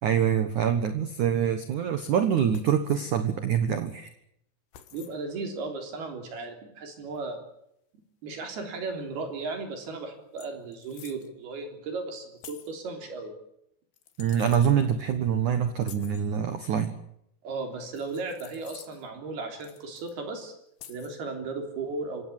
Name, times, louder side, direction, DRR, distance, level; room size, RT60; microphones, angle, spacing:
voice 1, 0.0-4.1 14.2-16.9, right 8 dB, 80° right, 9 dB, 1.7 m, -25 dB
sound 1, 2.5-3.0 4.7-5.2 7.2-7.3 9.5-9.6 9.8-10.0 10.4-11.3 12.4-12.8 13.9-14.7 15.8-16.2 17.9-19.1 19.6-20.1 20.8-21.2, left 10 dB, 65° left, 3.5 m, -49 dB
voice 2, 4.9-7.4 8.2-13.3 17.4-20.5 20.9-22.3, right 3 dB, 55° right, 4 dB, 5.2 m, -35 dB
27.0 x 15.5 x 9.9 m, 0.77 s
omnidirectional pair, 5.8 m